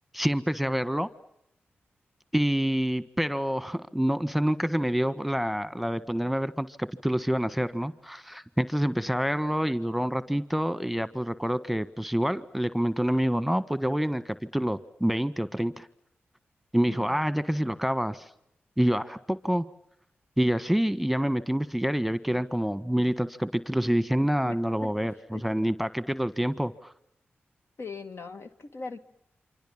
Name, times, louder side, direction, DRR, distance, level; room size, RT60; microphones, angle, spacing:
voice 1, 0.1-1.1 2.3-15.9 16.7-18.3 18.8-19.7 20.4-26.7, equal, ahead, 13 dB, 1.6 m, -27 dB
voice 2, 16.9-17.2 24.4-24.9 25.3-25.6 27.8-29.0, left 4 dB, 65° left, 7 dB, 2.2 m, -40 dB
28.5 x 25.5 x 7.3 m, 0.79 s
cardioid pair, 40°, 5 cm